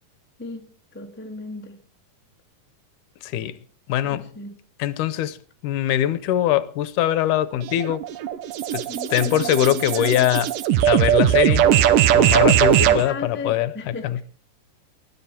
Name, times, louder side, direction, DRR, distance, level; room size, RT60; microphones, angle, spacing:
voice 1, 0.4-1.8 4.0-4.6 8.9-10.3 12.8-14.2, left 3 dB, 15° left, 0.4 m, -36 dB
voice 2, 3.2-3.6 3.9-4.3 4.8-5.4 5.6-8.0 8.7-8.8 9.1-10.5 10.9-11.7 12.1-14.2, left 12 dB, 75° left, 2.2 m, -22 dB
sound 1, 7.6-13.1, right 11 dB, 85° right, 2.5 m, -19 dB
19.5 x 13.0 x 4.3 m
omnidirectional pair, 3.8 m